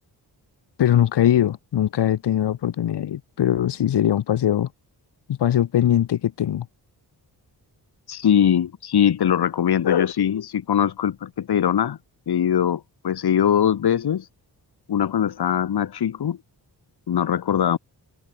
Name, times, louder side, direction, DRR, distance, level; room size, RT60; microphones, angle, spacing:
voice 1, 0.8-4.7 5.3-6.7, left 11 dB, 85° left, 0.9 m, -21 dB
voice 2, 8.1-12.0 12.3-14.3 14.9-16.4 17.1-17.8, left 9 dB, 70° left, 1.3 m, -21 dB
wide cardioid pair, 145°, 41 cm